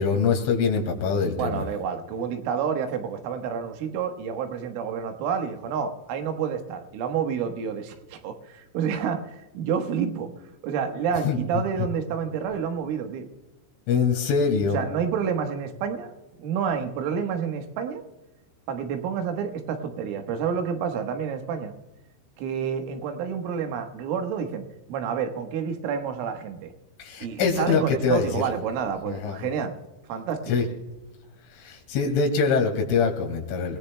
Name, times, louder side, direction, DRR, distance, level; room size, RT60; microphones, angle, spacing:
voice 1, 0.0-1.6 11.2-11.6 13.9-14.8 27.0-28.4 29.1-29.5 30.5-30.6 31.5-33.8, left 5 dB, 85° left, 2 dB, 4.5 m, -24 dB
voice 2, 1.4-9.3 9.6-10.3 10.6-13.3 14.7-16.1 16.4-18.0 18.7-21.7 22.4-24.6 24.9-26.7 27.2-29.8 30.1-30.6, right 7 dB, 90° right, 5 dB, 3.9 m, -29 dB
28.0 x 18.0 x 2.2 m, 1.1 s
omnidirectional pair, 5.5 m